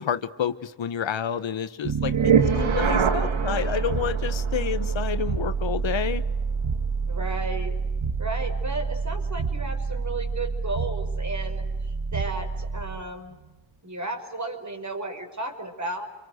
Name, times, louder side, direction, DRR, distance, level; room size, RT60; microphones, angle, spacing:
voice 1, 0.0-2.2 2.5-6.2, left 8 dB, 70° left, 12 dB, 1.3 m, -29 dB
sound 1, 1.8-13.0, right 5 dB, 80° right, 2.4 m, -26 dB
voice 2, 2.4-3.9 7.1-7.8 8.2-13.4 13.8-16.0, right 2 dB, 35° right, 5 dB, 5.8 m, -34 dB
29.5 x 24.0 x 8.0 m, 1.1 s
cardioid pair, 65°, 47 cm